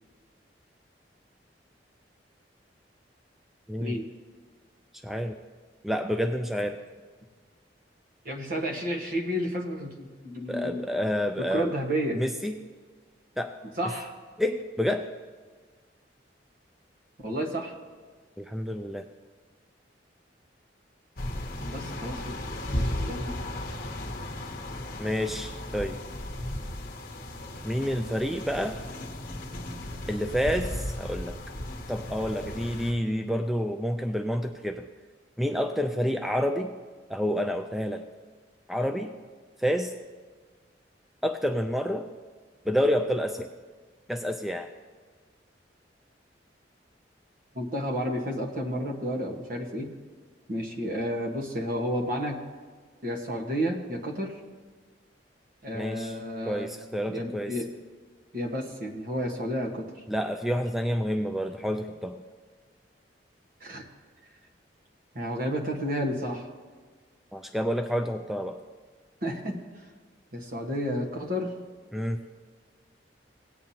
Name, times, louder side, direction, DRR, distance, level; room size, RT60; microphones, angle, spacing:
voice 1, 3.7-4.0 5.0-5.4 5.8-6.8 10.5-11.7 12.1-12.6 13.4-13.5 14.4-15.1 18.4-19.1 25.0-26.0 27.6-28.8 30.1-31.4 31.9-34.9 35.4-36.7 37.1-38.0 38.7-39.1 39.6-39.9 41.2-42.1 42.7-43.5 44.1-44.7 55.7-56.2 56.5-57.5 60.1-62.1 67.3-68.6 71.9-72.2, equal, ahead, 6 dB, 0.3 m, -28 dB
voice 2, 8.2-10.9 11.4-12.2 13.8-14.1 17.2-17.8 21.6-22.3 22.7-23.4 47.5-49.9 50.5-52.4 53.0-54.4 55.6-56.7 57.1-57.7 58.3-60.0 63.6-63.8 65.1-66.5 69.2-69.8 70.3-71.5, equal, 50° right, 1 dB, 1.3 m, -31 dB
sound 1, 21.2-32.9, left 1 dB, 55° left, 1.0 m, -35 dB
17.5 x 9.0 x 2.8 m, 1.5 s
head